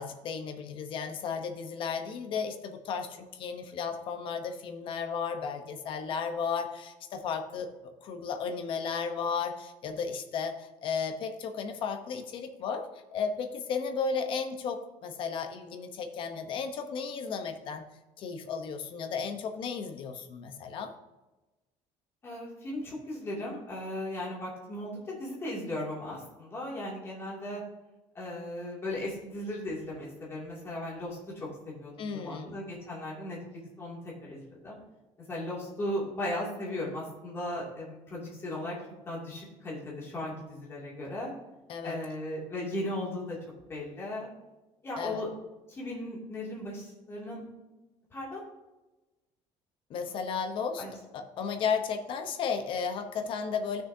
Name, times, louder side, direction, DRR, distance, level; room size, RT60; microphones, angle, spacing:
voice 1, 0.0-7.7 8.0-12.9 13.1-17.8 18.2-20.9 32.0-32.6 41.7-42.0 45.0-45.2 49.9-50.8 51.1-53.8, left 6 dB, 40° left, 7 dB, 0.9 m, -34 dB
voice 2, 22.2-27.6 28.1-34.8 35.3-38.8 39.1-41.3 41.8-43.4 43.7-44.3 44.8-45.3 45.7-47.4 48.1-48.4 50.8-50.9, left 1 dB, 20° left, -4 dB, 2.5 m, -37 dB
15.0 x 6.3 x 2.7 m, 1.1 s
cardioid pair, 180°, 13 cm